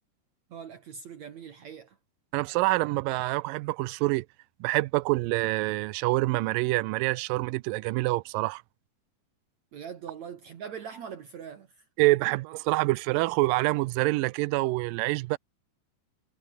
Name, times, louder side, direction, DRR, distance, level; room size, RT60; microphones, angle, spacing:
voice 1, 0.5-2.0 9.7-11.8, right 7 dB, 60° right, 2.8 m, -42 dB
voice 2, 2.3-4.3 4.6-8.6 12.0-15.4, right 21 dB, 85° right, 2.3 m, -26 dB
omnidirectional pair, 4.0 m